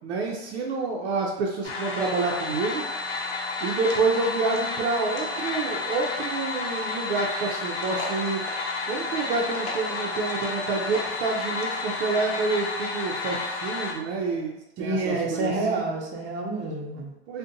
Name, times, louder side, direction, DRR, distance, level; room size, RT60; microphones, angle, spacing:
voice 1, 0.0-2.8 3.6-8.4 8.9-15.9 17.3-17.4, right 4 dB, 90° right, -1 dB, 0.5 m, -28 dB
sound 1, 1.6-13.9, left 3 dB, 80° left, 0.7 m, -31 dB
voice 2, 14.8-17.1, right 2 dB, 35° right, 0 dB, 0.6 m, -28 dB
2.6 x 2.1 x 2.6 m, 0.92 s
supercardioid pair, 125°, 32 cm